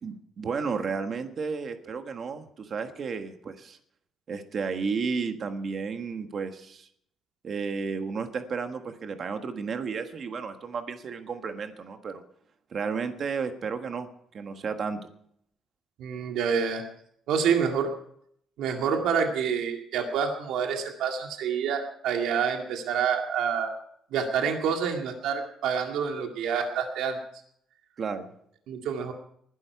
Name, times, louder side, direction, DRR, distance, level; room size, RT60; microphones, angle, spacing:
voice 1, 0.0-3.8 4.3-6.9 7.4-12.2 12.7-14.1 14.3-15.0 28.0-28.3, right 5 dB, 35° right, 7 dB, 1.3 m, -32 dB
voice 2, 16.0-16.8 17.3-17.9 18.6-23.7 24.1-27.2 28.7-29.1, right 6 dB, 75° right, 3 dB, 2.1 m, -27 dB
20.5 x 11.5 x 4.7 m, 0.68 s
cardioid pair, 180°, 0 cm